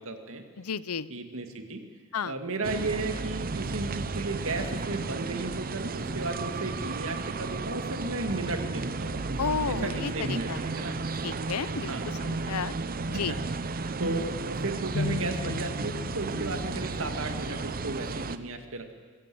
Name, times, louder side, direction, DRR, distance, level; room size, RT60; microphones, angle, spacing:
voice 1, 0.0-0.4 1.1-1.8 2.2-9.2 9.7-11.0 11.9-12.1 13.1-13.4 13.7-19.0, right 2 dB, 65° right, 6 dB, 2.3 m, -34 dB
voice 2, 0.6-1.1 2.1-2.3 9.4-10.9 11.2-11.9 12.2-12.7 13.1-13.3, left 6 dB, 85° left, 17 dB, 0.7 m, -32 dB
sound 1, 2.6-18.4, right 3 dB, 40° right, 0.7 m, -33 dB
sound 2, 14.9-18.2, left 3 dB, 50° left, 0.9 m, -37 dB
23.5 x 16.0 x 7.9 m, 1.5 s
head